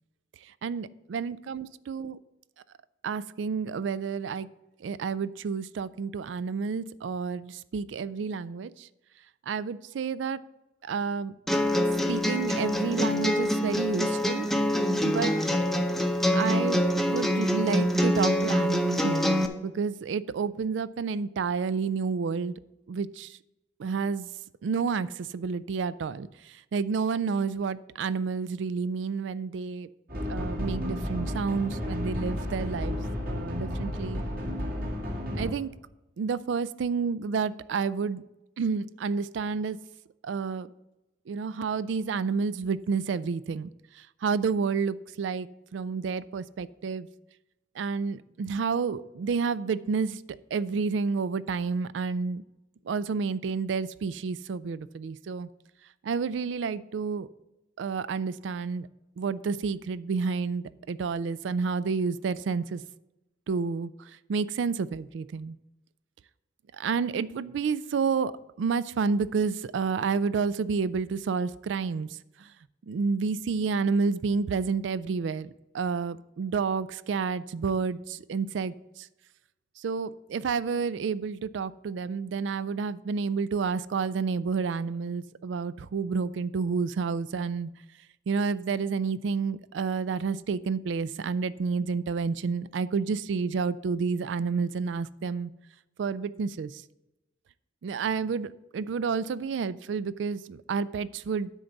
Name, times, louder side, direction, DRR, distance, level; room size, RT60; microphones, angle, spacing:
voice 1, 0.6-2.2 3.0-4.5 4.8-8.9 9.5-10.4 10.8-11.3 12.1-14.5 15.0-15.3 16.3-16.8 17.1-19.4 19.6-22.5 22.9-23.4 23.8-24.3 24.6-29.9 30.3-33.0 33.3-34.2 35.3-35.7 36.2-38.2 38.6-39.8 40.2-40.7 41.3-43.7 44.0-47.1 47.8-50.2 50.5-52.4 52.9-55.5 56.0-57.3 57.8-58.9 59.2-62.8 63.5-63.9 64.3-65.6 66.8-68.3 68.6-72.1 72.4-72.5 72.9-79.1 79.8-87.7 88.3-95.5 96.0-96.8 97.8-101.5, right 5 dB, 80° right, 17 dB, 0.4 m, -30 dB
sound 1, 11.5-19.5, equal, ahead, 0.6 m, -25 dB
sound 2, 30.1-35.5, left 1 dB, 55° right, 2.0 m, -32 dB
9.9 x 4.0 x 7.0 m, 0.97 s
head